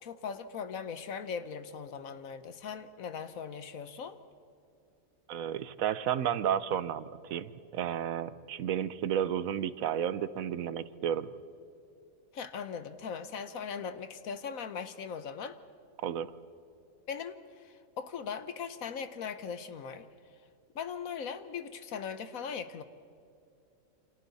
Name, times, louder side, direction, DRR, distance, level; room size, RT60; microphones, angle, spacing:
voice 1, 0.0-4.2 12.3-15.6 17.1-20.1 20.7-22.8, left 6 dB, 80° left, 11 dB, 1.4 m, -39 dB
voice 2, 5.3-11.3 16.0-16.3, right 9 dB, 80° right, 15 dB, 1.2 m, -32 dB
29.0 x 26.0 x 4.2 m, 2.5 s
omnidirectional pair, 1.4 m